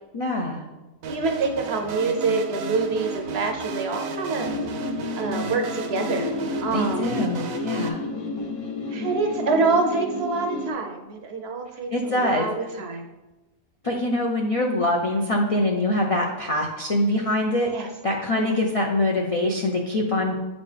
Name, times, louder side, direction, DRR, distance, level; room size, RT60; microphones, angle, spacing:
voice 1, 0.1-0.6 6.7-8.0 11.9-12.5 13.8-20.4, left 1 dB, 50° left, 1 dB, 0.4 m, -24 dB
sound 1, 1.0-7.9, right 6 dB, 85° right, 1.1 m, -35 dB
voice 2, 1.1-4.5 5.1-6.3 6.6-7.3 8.9-13.0 17.7-17.9 18.4-18.5, right 4 dB, 60° right, 4 dB, 0.8 m, -26 dB
sound 2, 2.0-10.7, left 2 dB, 70° left, 1.1 m, -31 dB
8.3 x 4.1 x 3.3 m, 1.1 s
omnidirectional pair, 1.4 m